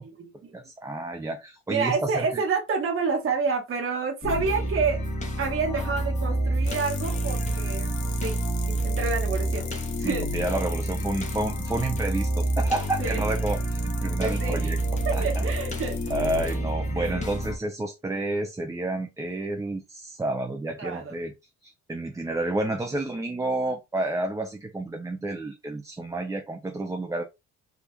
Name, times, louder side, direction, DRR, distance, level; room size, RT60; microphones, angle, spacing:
voice 1, 0.0-0.5 1.7-5.0 5.4-7.9 8.2-8.4 8.7-9.7 10.0-10.4 13.0-13.2 14.2-14.7 15.0-16.3 16.9-17.4 20.8-21.2, right 4 dB, 45° right, 1.0 m, -29 dB
voice 2, 0.5-2.4 10.0-14.8 15.1-15.4 16.1-21.3 21.6-27.2, right 2 dB, 10° right, 0.4 m, -30 dB
sound 1, 4.2-17.6, right 1 dB, 25° left, 1.0 m, -28 dB
sound 2, 6.6-16.5, left 8 dB, 70° left, 0.7 m, -42 dB
3.5 x 2.4 x 2.9 m
cardioid pair, 90°, 30 cm